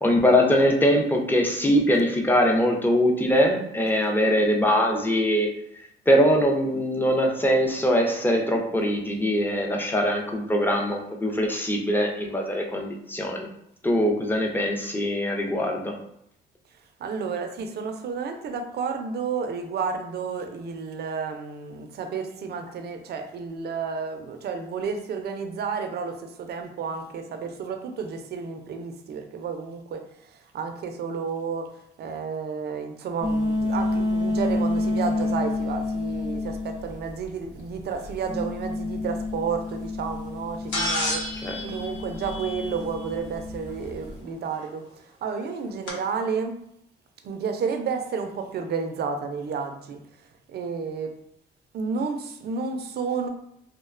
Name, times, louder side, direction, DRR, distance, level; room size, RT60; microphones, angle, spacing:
voice 1, 0.0-5.5 6.1-13.5 13.8-15.9 41.4-41.6, equal, 10° left, 0 dB, 0.5 m, -22 dB
voice 2, 17.0-30.0 30.5-31.7 32.0-44.8 45.2-46.5 47.2-50.0 50.5-51.1 51.7-53.3, right 5 dB, 55° right, 5 dB, 0.4 m, -31 dB
sound 1, 33.2-44.2, left 2 dB, 65° left, 0.8 m, -29 dB
sound 2, 40.7-43.0 44.6-44.7 45.9-46.0, left 1 dB, 85° left, 0.9 m, -30 dB
2.5 x 2.1 x 2.4 m, 0.75 s
cardioid pair, 90°, 20 cm